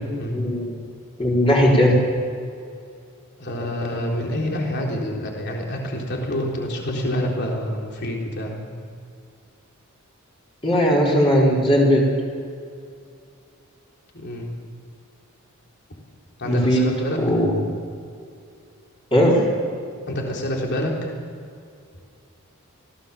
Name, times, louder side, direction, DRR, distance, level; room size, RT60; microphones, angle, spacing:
voice 1, 0.3-0.8 1.2-1.9 10.6-12.0 16.4-16.8 17.2-17.6 19.1-19.4, equal, 25° left, -4 dB, 4.8 m, -18 dB
voice 2, 3.4-8.6 14.1-14.5 16.4-17.2 20.1-20.9, equal, 50° left, -1 dB, 3.7 m, -27 dB
24.5 x 17.0 x 7.2 m, 2.4 s
head